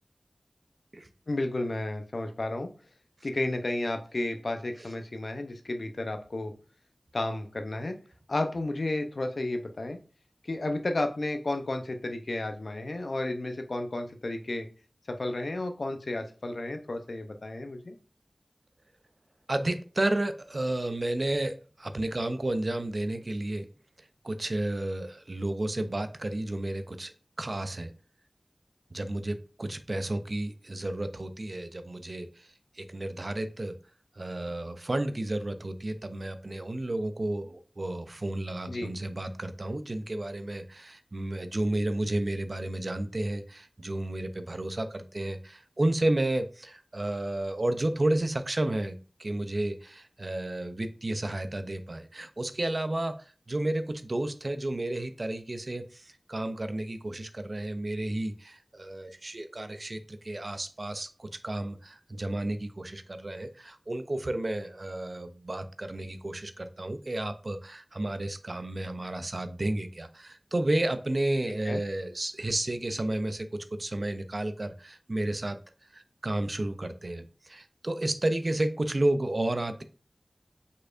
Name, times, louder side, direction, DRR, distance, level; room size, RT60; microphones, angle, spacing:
voice 1, 1.3-2.7 3.2-6.5 7.1-8.0 8.3-10.0 10.4-14.7 15.1-17.9 38.7-38.9 71.5-71.8, left 2 dB, 70° left, 6 dB, 0.6 m, -32 dB
voice 2, 19.5-23.7 24.2-27.9 28.9-32.5 32.8-33.8 34.2-75.6 75.9-79.8, right 1 dB, 50° right, 9 dB, 0.5 m, -32 dB
5.2 x 4.2 x 2.5 m, 0.36 s
wide cardioid pair, 65°, 0 cm